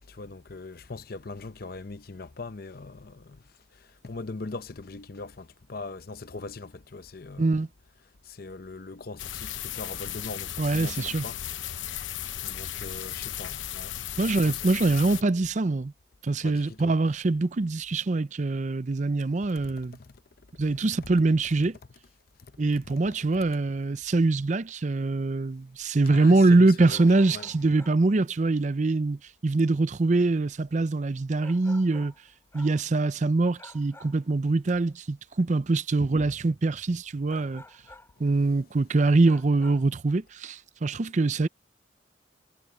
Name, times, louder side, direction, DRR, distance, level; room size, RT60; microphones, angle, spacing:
voice 1, 0.0-7.7 8.2-12.0 12.4-14.1 14.4-14.7 16.4-17.0 19.6-20.2 21.0-21.1 22.4-22.6 22.8-22.9 26.1-27.5, left 3 dB, 50° left, 0.7 m, -41 dB
sound 1, 9.2-15.2, left 11 dB, 85° left, 0.9 m, -35 dB
voice 2, 10.6-11.2 14.2-15.9 16.2-20.0 20.6-21.8 22.6-32.1 32.5-37.6 38.2-41.5, right 3 dB, 40° right, 0.5 m, -24 dB
sound 2, 26.9-28.1 31.4-32.9 33.6-34.3 37.3-38.2 39.2-40.0, left 2 dB, 15° left, 6.6 m, -51 dB
head